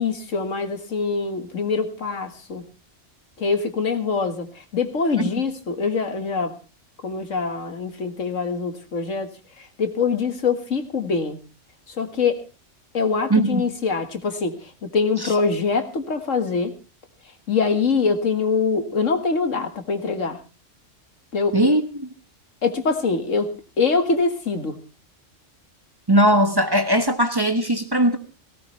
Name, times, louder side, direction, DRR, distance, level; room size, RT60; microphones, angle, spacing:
voice 1, 0.0-2.6 3.4-6.5 7.0-9.3 9.6-11.4 11.9-12.4 12.9-16.7 17.5-20.4 21.3-21.6 22.6-24.8, left 4 dB, 80° left, 8 dB, 2.1 m, -24 dB
voice 2, 13.3-13.6 21.5-22.1 26.1-28.2, right 1 dB, 20° right, 7 dB, 1.3 m, -19 dB
17.5 x 17.5 x 3.3 m, 0.30 s
omnidirectional pair, 1.3 m